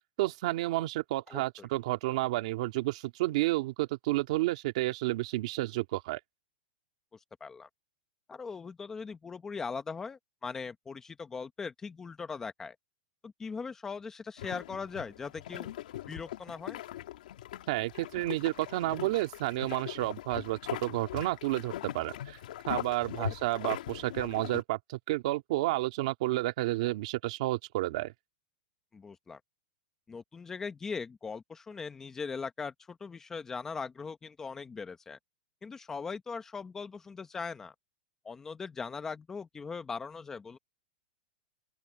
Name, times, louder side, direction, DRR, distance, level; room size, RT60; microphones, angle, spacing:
voice 1, 0.2-6.2 17.7-22.4 22.7-28.1, right 18 dB, 50° right, 2.2 m, -31 dB
voice 2, 1.3-1.7 7.4-7.7 8.3-12.8 13.2-15.7 16.1-16.8 23.2-23.3 28.9-29.4 30.1-35.2 35.6-37.7 38.2-40.6, left 5 dB, 10° left, 0.9 m, -40 dB
sound 1, 14.4-24.6, left 13 dB, 65° left, 1.8 m, -41 dB
open air
supercardioid pair, 170°, 5 cm